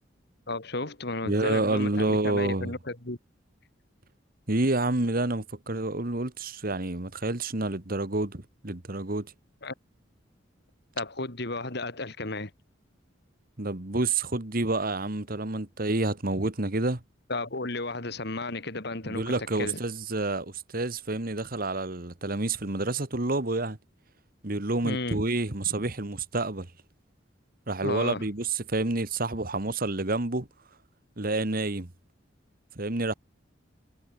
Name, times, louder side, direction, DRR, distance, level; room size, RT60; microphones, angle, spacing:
voice 1, 0.5-3.2 9.6-9.7 11.0-12.5 17.3-19.8 24.8-25.2 27.8-28.2, left 2 dB, 60° left, 3.0 m, -33 dB
voice 2, 1.2-2.7 4.5-9.3 13.6-17.0 19.0-23.8 24.4-26.7 27.7-30.5 31.2-31.9 32.7-33.1, right 2 dB, 50° right, 1.8 m, -28 dB
head